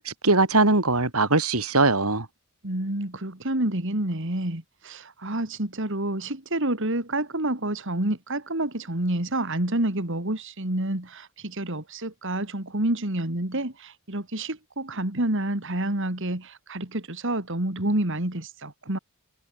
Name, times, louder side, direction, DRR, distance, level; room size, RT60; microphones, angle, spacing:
voice 1, 0.0-2.3, right 3 dB, 80° right, 3.6 m, -21 dB
voice 2, 2.6-19.0, right 1 dB, 60° right, 2.9 m, -28 dB
head